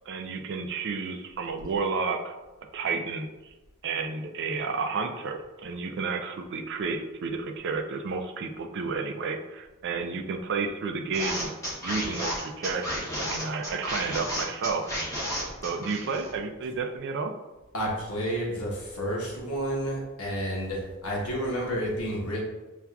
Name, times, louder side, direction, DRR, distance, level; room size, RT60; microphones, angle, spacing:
voice 1, 0.1-2.3 2.7-3.5 3.8-11.5 11.8-14.9 15.6-17.4, right 4 dB, 55° right, 4 dB, 0.4 m, -31 dB
sound 1, 11.1-16.4, equal, 15° left, 0.9 m, -32 dB
voice 2, 17.7-22.4, equal, 85° left, -3 dB, 1.1 m, -30 dB
6.8 x 2.4 x 2.3 m, 1.1 s
head